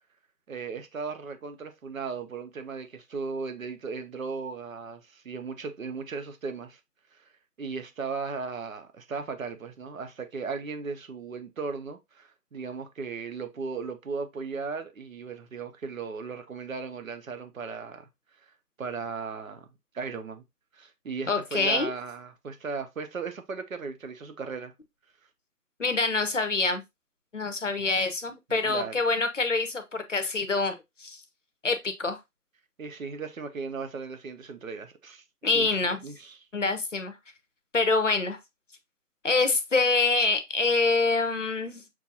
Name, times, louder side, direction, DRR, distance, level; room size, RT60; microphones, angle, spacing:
voice 1, 0.5-6.8 7.1-7.2 7.6-18.1 18.8-19.7 19.9-20.4 20.7-24.7 28.5-29.0 32.8-35.2 35.5-35.7 36.0-36.4, right 5 dB, 60° right, 0.8 m, -36 dB
voice 2, 21.3-21.9 25.8-26.8 27.3-31.2 31.6-32.2 35.4-36.0 36.5-37.2 37.7-38.4 39.2-41.8, left 3 dB, 50° left, 0.7 m, -26 dB
6.1 x 2.6 x 2.7 m
figure-of-eight pair, 170°, 47 cm